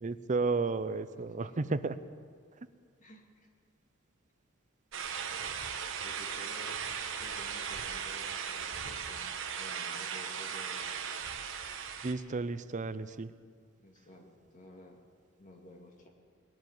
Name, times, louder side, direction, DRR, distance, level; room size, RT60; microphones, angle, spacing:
voice 1, 0.0-2.0 12.0-13.3, right 3 dB, 35° right, 13 dB, 0.6 m, -32 dB
voice 2, 1.1-1.5 3.0-3.5 5.3-5.5 6.0-6.9 7.2-10.9 13.8-15.0 15.4-16.1, left 1 dB, 40° left, 1 dB, 2.2 m, -53 dB
sound 1, 4.9-12.1, right 7 dB, 70° right, 1.2 m, -38 dB
20.0 x 7.3 x 9.4 m, 2.1 s
head